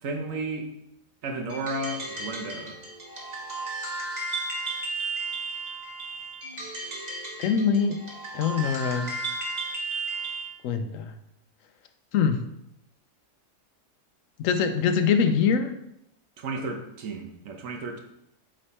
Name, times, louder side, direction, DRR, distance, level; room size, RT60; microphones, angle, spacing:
voice 1, 0.0-0.7 1.2-2.8 16.4-18.0, right 2 dB, 80° right, 3 dB, 1.3 m, -33 dB
sound 1, 1.5-10.5, right 3 dB, 35° right, 1.1 m, -34 dB
voice 2, 7.4-8.0 8.3-9.1 10.6-11.1 12.1-12.4 14.4-15.7, left 6 dB, 80° left, 8 dB, 1.0 m, -23 dB
7.7 x 3.3 x 4.2 m, 0.80 s
omnidirectional pair, 1.4 m